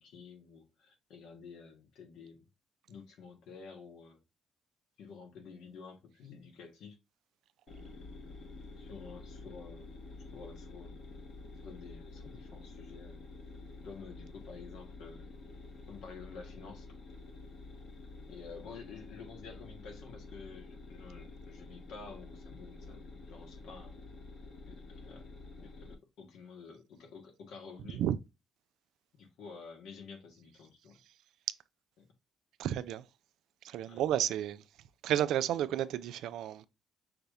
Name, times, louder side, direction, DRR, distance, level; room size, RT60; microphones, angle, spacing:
voice 1, 0.0-2.4 2.9-4.2 5.0-7.0 8.8-9.9 10.3-11.0 11.6-13.3 13.8-15.3 15.9-16.9 18.3-24.1 24.7-28.0 29.2-31.0 33.8-34.0, left 5 dB, 85° left, 1.5 m, -50 dB
sound 1, 7.7-25.9, left 3 dB, 65° left, 1.6 m, -49 dB
voice 2, 32.6-33.0 33.6-34.6 35.0-36.7, right 11 dB, 85° right, 0.4 m, -31 dB
5.8 x 3.4 x 2.6 m
cardioid pair, 90°, 0 cm